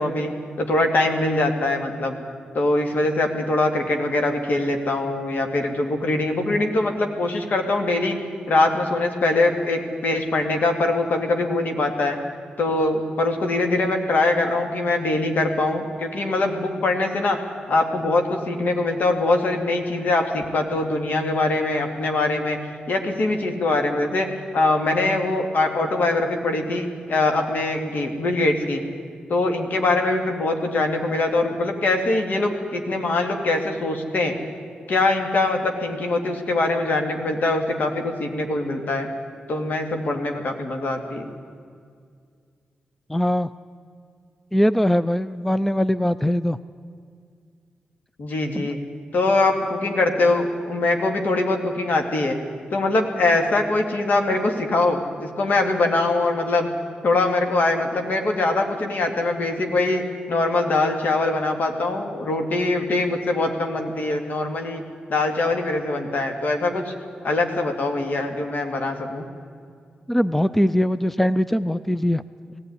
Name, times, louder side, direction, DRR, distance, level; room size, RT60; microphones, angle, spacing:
voice 1, 0.0-2.2 2.5-8.2 8.5-12.2 12.6-17.4 17.7-22.6 22.9-28.8 29.3-34.3 34.9-39.1 39.5-41.3 48.2-48.8 49.1-52.4 52.7-56.7 57.0-64.8 65.1-66.9 67.2-69.3, left 2 dB, 65° left, 4 dB, 2.5 m, -22 dB
voice 2, 43.1-43.5 44.5-46.6 48.5-48.7 70.1-72.2, equal, 5° left, 15 dB, 0.5 m, -21 dB
19.0 x 14.5 x 9.8 m, 2.2 s
cardioid pair, 70°, 3 cm